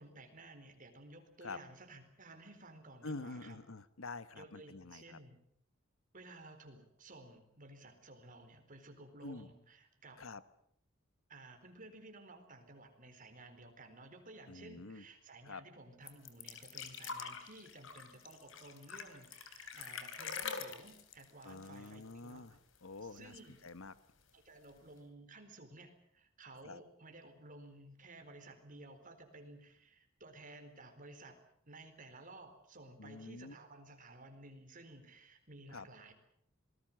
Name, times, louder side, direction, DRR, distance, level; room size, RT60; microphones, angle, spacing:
voice 1, 0.0-3.6 4.3-5.4 6.1-10.3 11.3-22.6 23.0-23.6 24.3-31.4 31.6-36.1, right 2 dB, 40° right, 6 dB, 4.2 m, -55 dB
voice 2, 3.0-5.2 9.2-9.5 10.2-10.4 14.5-15.0 15.4-15.6 21.4-23.9 26.6-26.8 33.0-33.5 35.7-35.9, left 3 dB, 85° left, 15 dB, 1.2 m, -47 dB
sound 1, 16.1-22.5 22.8-22.9 23.2-23.9 24.7-24.8, left 6 dB, 70° left, 3.3 m, -45 dB
26.5 x 20.0 x 7.6 m, 0.68 s
head